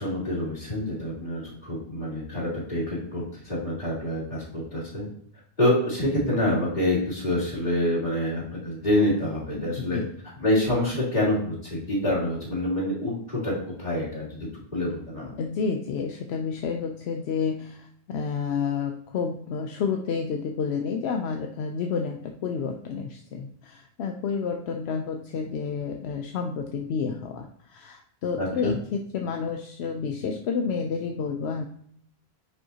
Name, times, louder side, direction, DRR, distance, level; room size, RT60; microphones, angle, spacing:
voice 1, 0.0-5.1 5.6-10.0 10.4-13.5 13.8-15.3 28.4-28.8, left 1 dB, 45° left, -8 dB, 3.2 m, -27 dB
voice 2, 15.4-31.6, left 5 dB, 80° left, 4 dB, 0.9 m, -30 dB
9.7 x 5.5 x 2.8 m, 0.64 s
omnidirectional pair, 1.1 m